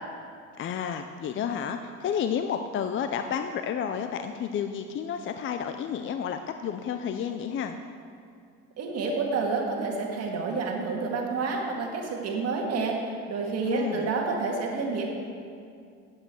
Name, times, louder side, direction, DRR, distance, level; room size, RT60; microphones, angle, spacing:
voice 1, 0.6-7.8 13.6-14.1, left 8 dB, 40° left, 7 dB, 0.6 m, -31 dB
voice 2, 8.8-12.9 13.3-15.1, right 4 dB, 55° right, 0 dB, 2.0 m, -29 dB
8.7 x 8.0 x 7.7 m, 2.3 s
cardioid pair, 110°, 30 cm